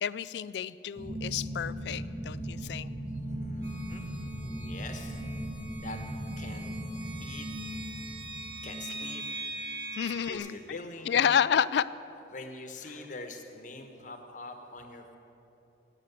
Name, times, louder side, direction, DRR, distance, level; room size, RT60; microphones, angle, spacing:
voice 1, 0.0-2.9 9.9-10.8 11.1-11.9, left 8 dB, 65° left, 18 dB, 0.3 m, -29 dB
sound 1, 0.9-10.4, right 1 dB, 45° right, 1.6 m, -39 dB
voice 2, 3.2-5.2 5.8-6.0 6.4-6.8 7.2-7.5 8.0-8.1 8.6-9.2 9.7-11.3 12.3-15.2, left 2 dB, 45° left, 5 dB, 1.1 m, -45 dB
sound 2, 3.6-10.4, right 3 dB, 65° right, 1.6 m, -43 dB
10.5 x 9.8 x 8.0 m, 3.0 s
head